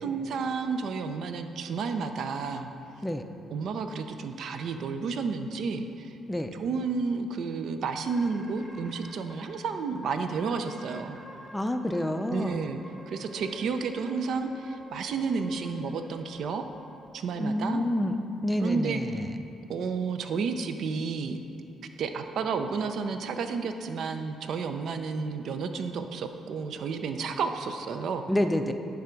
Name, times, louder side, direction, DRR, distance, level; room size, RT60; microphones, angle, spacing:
voice 1, 0.0-2.7 3.5-6.1 6.5-11.2 12.3-12.8 13.1-16.6 17.1-17.8 18.6-19.3 19.7-21.4 22.0-28.3, right 5 dB, 70° right, 7 dB, 0.5 m, -31 dB
sound 1, 8.1-9.5 9.9-10.0 10.4-11.6 11.9-17.1, left 1 dB, 10° right, 1.1 m, -49 dB
voice 2, 11.5-12.6 17.4-18.1 18.4-19.3 28.3-28.7, left 1 dB, 10° left, 7 dB, 0.4 m, -28 dB
10.0 x 3.5 x 5.1 m, 2.7 s
cardioid pair, 90°, 0 cm